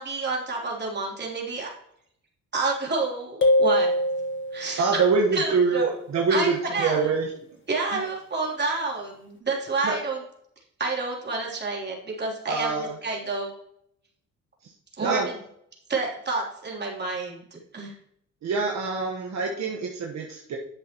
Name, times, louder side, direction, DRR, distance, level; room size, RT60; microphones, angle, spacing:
voice 1, 0.0-1.7 2.5-3.9 4.5-5.0 5.3-5.9 6.3-7.1 7.7-10.2 10.8-12.7 13.0-13.5 15.0-15.2 15.9-17.4 17.7-17.9, right 3 dB, 35° right, -3 dB, 3.4 m, -29 dB
sound 1, 3.4-4.9, left 1 dB, 40° left, 1.5 m, -22 dB
voice 2, 4.8-7.3 7.9-8.0 9.8-10.0 12.5-13.0 14.6-14.7 15.0-15.3 18.4-20.6, right 4 dB, 65° right, 0 dB, 1.4 m, -25 dB
10.5 x 7.5 x 3.0 m, 0.71 s
cardioid pair, 90°, 30 cm